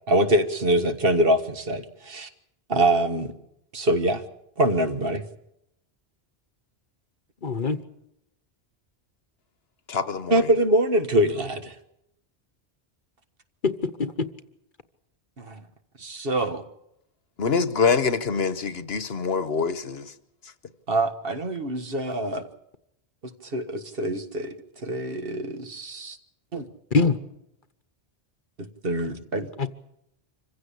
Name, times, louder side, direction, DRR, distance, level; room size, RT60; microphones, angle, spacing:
voice 1, 0.1-2.3 2.7-3.3 3.7-4.2 4.6-5.2 10.3-11.8 15.4-15.6 16.0-16.6 20.9-22.4 23.5-24.6 24.8-26.2 26.5-26.7 28.8-29.5, right 1 dB, 55° right, 1.7 m, -24 dB
voice 2, 7.4-7.8 13.6-14.3 26.9-27.2 29.6-29.7, left 4 dB, 50° left, 1.2 m, -23 dB
voice 3, 9.9-10.5 17.4-20.1 20.4-20.5, left 5 dB, 65° left, 1.3 m, -25 dB
25.5 x 16.0 x 8.4 m
omnidirectional pair, 1.1 m